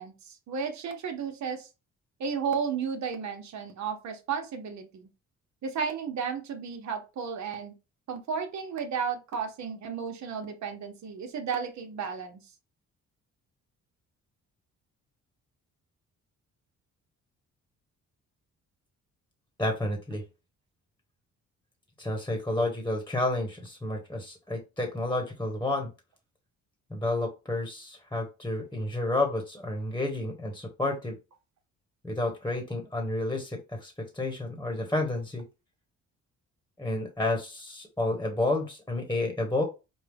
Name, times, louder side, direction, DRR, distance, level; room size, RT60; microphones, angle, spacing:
voice 1, 0.0-1.7 2.2-5.1 5.6-7.7 8.1-12.4, right 6 dB, 65° right, 5 dB, 1.2 m, -33 dB
voice 2, 19.6-20.2 22.0-25.9 26.9-31.2 32.0-35.4 36.8-39.6, left 2 dB, 10° left, 2 dB, 1.2 m, -30 dB
5.1 x 2.3 x 3.5 m, 0.28 s
cardioid pair, 90°, 30 cm